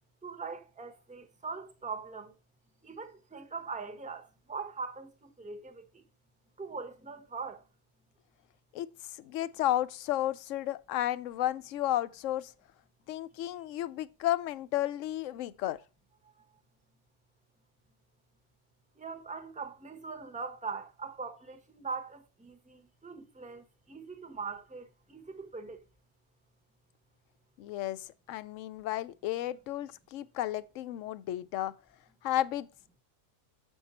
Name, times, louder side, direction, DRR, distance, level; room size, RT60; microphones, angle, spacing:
voice 1, 0.2-2.3 2.8-6.0 6.6-7.6 19.0-25.8, right 4 dB, 5° right, 0.8 m, -41 dB
voice 2, 9.2-12.5 13.1-15.8 27.6-31.7 32.2-32.7, left 13 dB, 70° left, 0.8 m, -33 dB
8.0 x 5.5 x 4.1 m
omnidirectional pair, 1.5 m